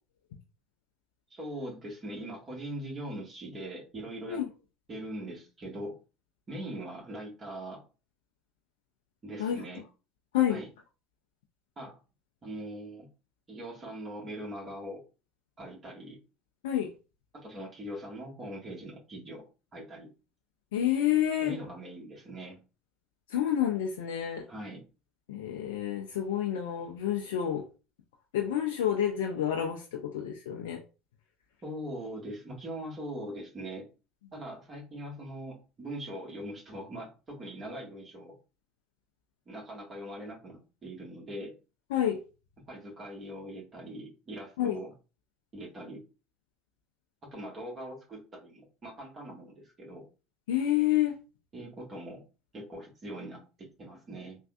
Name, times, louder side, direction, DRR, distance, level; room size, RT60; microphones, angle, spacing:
voice 1, 1.3-4.4 4.9-6.0 6.5-7.8 9.2-9.8 10.5-10.7 11.8-11.9 12.4-13.1 13.5-15.0 15.6-16.2 17.3-19.4 19.7-20.1 21.4-22.6 24.5-24.8 31.6-33.9 34.3-38.4 39.4-41.5 42.7-44.9 45.5-46.0 47.2-50.1 51.5-52.2 52.5-54.4, right 1 dB, 35° right, 1.5 m, -41 dB
voice 2, 20.7-21.5 23.3-24.4 25.3-27.6 28.3-30.8 41.9-42.2 44.6-44.8 50.5-51.1, left 11 dB, 80° left, 0.4 m, -28 dB
3.5 x 2.4 x 2.3 m
hypercardioid pair, 70°, 0 cm